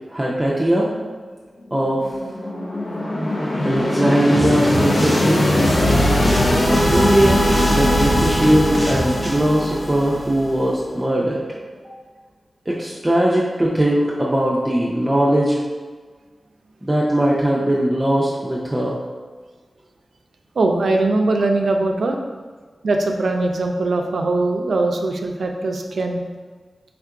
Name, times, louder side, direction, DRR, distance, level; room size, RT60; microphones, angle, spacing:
voice 1, 0.1-0.9 1.7-2.1 3.6-5.5 6.7-7.4 7.7-11.4 11.8-11.9 12.7-15.6 16.8-19.0, right 1 dB, 15° right, -5 dB, 0.5 m, -19 dB
sound 1, 1.9-10.7, left 1 dB, 65° left, 0.6 m, -20 dB
sound 2, 4.3-5.3 5.6-9.4, equal, 5° left, 1.0 m, -26 dB
voice 2, 20.6-22.2 22.8-26.2, right 2 dB, 85° right, 3 dB, 0.4 m, -21 dB
3.5 x 2.5 x 4.5 m, 1.5 s
wide cardioid pair, 100°, 0 cm